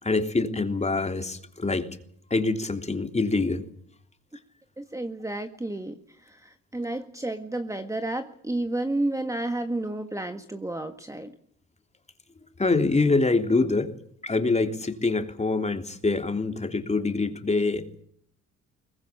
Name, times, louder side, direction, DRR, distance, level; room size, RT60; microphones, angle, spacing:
voice 1, 0.0-1.8 2.3-3.6 12.6-13.9 14.2-17.9, left 3 dB, 20° left, 6 dB, 3.3 m, -25 dB
voice 2, 4.8-11.4, right 2 dB, 10° right, 7 dB, 1.7 m, -31 dB
23.0 x 19.5 x 8.6 m, 0.63 s
cardioid pair, 90°, 30 cm